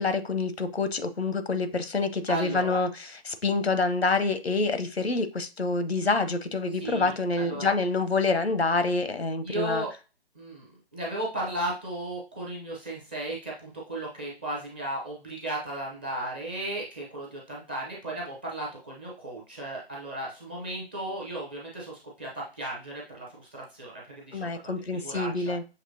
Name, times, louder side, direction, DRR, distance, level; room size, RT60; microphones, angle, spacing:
voice 1, 0.0-9.8 24.3-25.6, left 3 dB, 85° left, 10 dB, 0.8 m, -27 dB
voice 2, 2.3-2.8 6.7-7.7 9.4-9.9 10.4-23.5 23.7-24.5 25.0-25.5, right 1 dB, 10° right, -4 dB, 0.5 m, -35 dB
6.5 x 3.0 x 2.7 m, 0.31 s
figure-of-eight pair, 145°, 31 cm